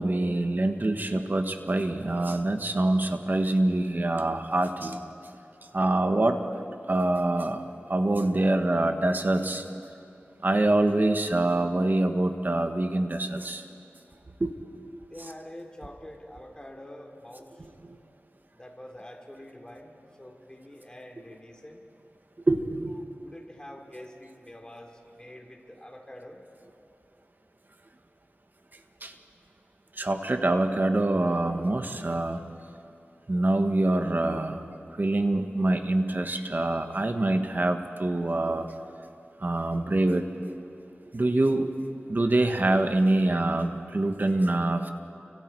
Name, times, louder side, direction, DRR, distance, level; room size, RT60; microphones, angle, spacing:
voice 1, 0.0-5.0 5.7-6.4 6.9-7.6 7.9-9.6 10.4-13.6 14.4-14.5 22.5-22.9 29.0-29.1 30.0-32.4 33.3-34.6 35.0-38.7 39.4-40.2 41.1-41.7 42.1-44.9, right 2 dB, 50° right, 6 dB, 1.5 m, -25 dB
voice 2, 15.0-17.7 18.5-21.8 22.9-26.4, left 1 dB, 20° left, 1 dB, 3.5 m, -46 dB
30.0 x 25.0 x 4.7 m, 2.8 s
wide cardioid pair, 60°, 4 cm